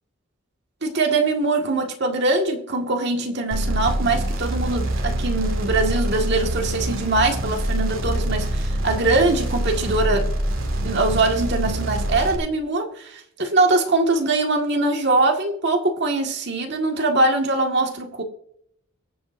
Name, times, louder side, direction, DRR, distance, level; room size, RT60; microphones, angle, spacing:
voice 1, 0.8-10.3 10.8-18.2, right 2 dB, 55° right, 3 dB, 1.8 m, -22 dB
sound 1, 3.5-12.4, right 1 dB, 80° right, 2.2 m, -25 dB
23.0 x 7.9 x 2.6 m, 0.70 s
head